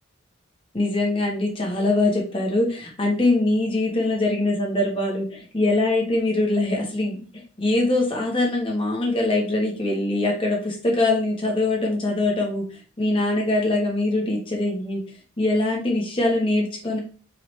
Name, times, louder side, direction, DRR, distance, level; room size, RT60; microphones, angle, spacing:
voice 1, 0.7-15.0 15.4-17.0, left 2 dB, 25° left, -1 dB, 1.3 m, -23 dB
4.6 x 3.2 x 3.2 m, 0.39 s
head